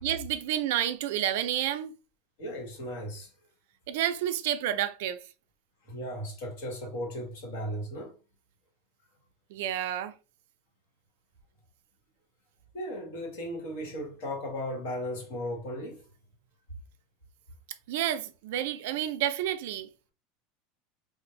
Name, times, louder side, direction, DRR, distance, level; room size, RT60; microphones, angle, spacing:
voice 1, 0.0-1.9 3.9-5.2 9.5-10.1 17.9-19.9, right 11 dB, 65° right, 0.3 m, -30 dB
voice 2, 2.4-3.3 5.8-8.1 12.7-16.1, equal, 70° left, 1.3 m, -36 dB
2.5 x 2.0 x 3.0 m
supercardioid pair, 180°, 0 cm